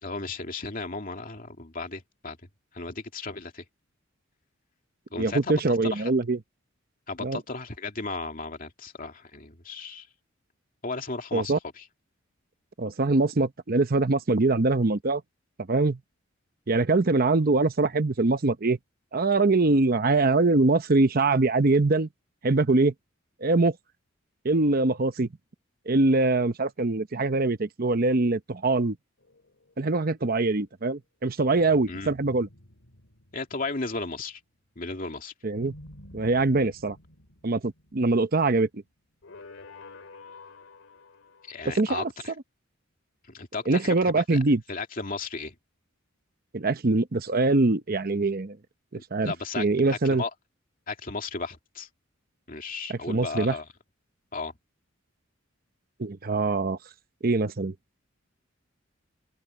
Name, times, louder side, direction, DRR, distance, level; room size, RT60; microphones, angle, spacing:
voice 1, 0.0-2.4 2.7-3.6 5.1-6.1 7.1-10.1 10.8-11.8 31.9-32.1 33.3-34.4 34.8-35.3 41.5-42.3 43.3-44.4 44.7-45.6 49.0-50.3 50.9-51.9 52.5-53.7 54.3-54.5, left 3 dB, 45° left, 2.5 m, -35 dB
voice 2, 5.2-6.4 7.2-7.4 11.3-11.6 12.8-15.2 15.7-16.0 16.7-18.8 19.1-22.1 22.4-22.9 23.4-23.7 24.4-25.3 25.9-29.0 29.8-32.5 35.4-35.7 36.1-37.0 37.4-38.8 41.6-42.1 43.7-44.6 46.5-48.6 49.1-50.2 52.9-53.5 56.0-56.8 57.2-57.7, right 3 dB, 45° right, 0.8 m, -23 dB
sound 1, 29.2-30.2 31.5-34.1 35.5-38.7 39.2-41.7, left 2 dB, 75° left, 2.6 m, -50 dB
open air
head